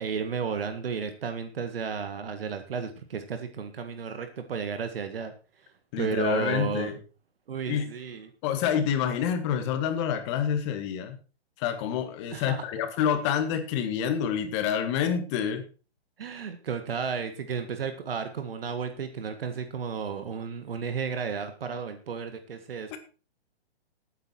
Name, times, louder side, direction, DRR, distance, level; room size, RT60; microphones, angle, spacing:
voice 1, 0.0-5.3 5.6-5.7 6.0-6.9 7.5-8.3 12.3-12.6 16.2-23.0, right 6 dB, 60° right, 8 dB, 1.8 m, -33 dB
voice 2, 5.9-7.0 7.7-7.9 8.4-11.2 11.6-15.6 22.9-23.0, left 8 dB, 25° left, 8 dB, 1.9 m, -27 dB
14.5 x 9.3 x 4.5 m, 0.36 s
hypercardioid pair, 155°, 32 cm